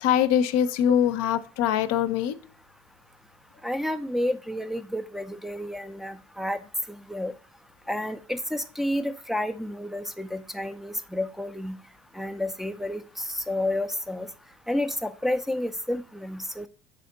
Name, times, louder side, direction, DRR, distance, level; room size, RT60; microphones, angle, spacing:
voice 1, 0.0-2.4, left 9 dB, 55° left, 13 dB, 0.6 m, -23 dB
voice 2, 3.6-6.6 6.9-7.3 7.9-11.8 12.1-14.3 14.7-16.7, left 1 dB, ahead, 8 dB, 0.4 m, -30 dB
6.6 x 4.2 x 3.9 m, 0.36 s
hypercardioid pair, 70°, 31 cm